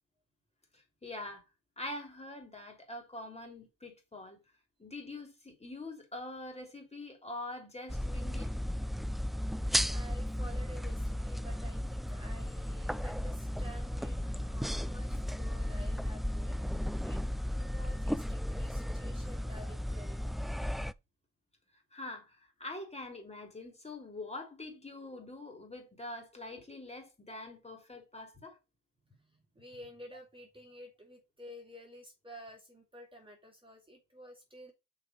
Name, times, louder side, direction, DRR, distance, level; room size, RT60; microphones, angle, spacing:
voice 1, 0.7-1.4 1.8-4.4 4.8-8.5 21.9-28.6, left 2 dB, 20° left, 3.3 m, -44 dB
sound 1, 7.9-20.9, equal, ahead, 0.3 m, -35 dB
voice 2, 9.3-17.2 17.6-20.3 29.0-34.7, equal, 15° right, 2.4 m, -52 dB
6.4 x 5.0 x 5.4 m
cardioid pair, 105°, 32 cm